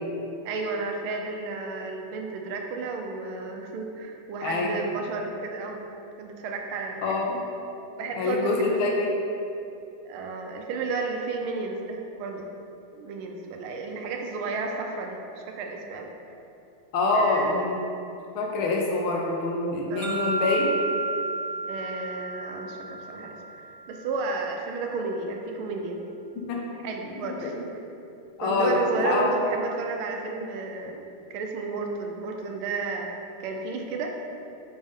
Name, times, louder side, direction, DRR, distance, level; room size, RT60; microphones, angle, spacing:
voice 1, 0.4-5.8 6.2-7.4 8.0-8.9 10.0-12.5 12.9-15.2 15.5-16.4 17.1-17.8 19.9-20.3 21.7-26.0 26.4-26.5 26.8-27.8 28.4-31.0 31.3-33.1 33.4-34.1, right 3 dB, 85° right, 2 dB, 1.5 m, -32 dB
voice 2, 4.4-4.8 7.0-7.4 8.2-9.1 16.9-17.9 18.3-20.8 26.4-26.7 27.2-27.5 28.4-29.3, left 3 dB, 80° left, -1 dB, 1.6 m, -26 dB
sound 1, 20.0-24.0, right 2 dB, 65° right, 0.8 m, -32 dB
5.3 x 5.2 x 3.6 m, 2.7 s
omnidirectional pair, 2.3 m